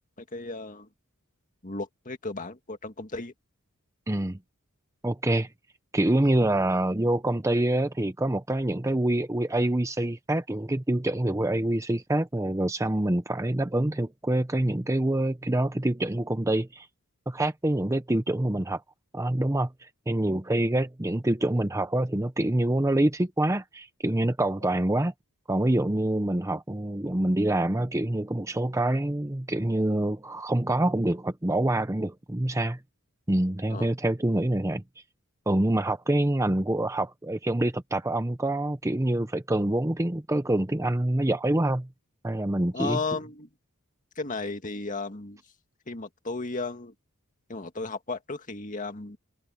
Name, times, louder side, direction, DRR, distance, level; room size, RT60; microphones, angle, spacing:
voice 1, 0.2-0.9 1.6-3.3 24.6-24.8 33.7-33.9 42.7-43.5 44.2-45.4 45.9-46.9 47.5-49.2, left 3 dB, 35° left, 1.9 m, -34 dB
voice 2, 4.1-4.4 5.0-5.5 5.9-16.9 17.3-18.8 19.1-25.1 25.5-32.8 33.3-34.8 35.5-41.9 42.2-43.0, right 1 dB, 15° right, 0.7 m, -26 dB
head